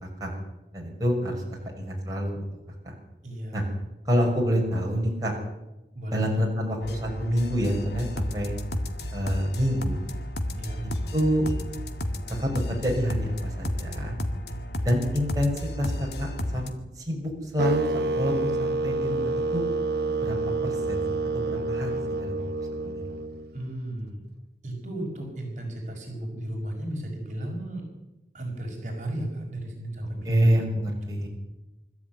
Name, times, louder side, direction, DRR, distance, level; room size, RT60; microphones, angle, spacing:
voice 1, 0.7-1.4 1.7-2.4 3.5-3.6 4.1-5.3 6.1-8.6 9.1-10.0 10.8-11.4 12.4-14.2 14.8-15.5 15.8-16.7 17.0-19.7 20.2-20.3 20.6-23.0 30.2-31.3, equal, 20° right, -2 dB, 6.0 m, -27 dB
voice 2, 3.2-3.6 5.9-6.3 10.5-10.8 23.5-24.2 24.6-27.9 28.3-30.5 31.2-31.3, right 1 dB, 45° right, 1 dB, 5.7 m, -34 dB
sound 1, 6.8-16.7, left 1 dB, 70° left, 2.2 m, -32 dB
sound 2, 17.6-23.7, right 3 dB, 75° right, 1.1 m, -28 dB
25.0 x 14.0 x 9.4 m, 0.98 s
head